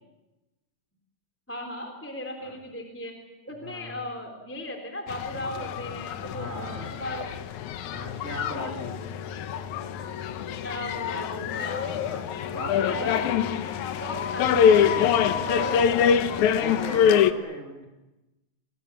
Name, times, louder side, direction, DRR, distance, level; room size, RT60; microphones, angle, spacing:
voice 1, 1.5-3.1 3.4-7.3 8.5-8.7 10.6-12.0 12.5-15.8, left 1 dB, 5° left, 2 dB, 3.2 m, -37 dB
voice 2, 3.6-4.0 6.3-6.9 7.9-9.0 11.9-12.2 12.5-13.4 14.7-16.1 16.5-17.9, equal, 20° left, 0 dB, 4.5 m, -38 dB
sound 1, 5.1-17.3, left 8 dB, 70° left, 2.2 m, -25 dB
29.5 x 22.0 x 7.4 m, 1.0 s
omnidirectional pair, 4.0 m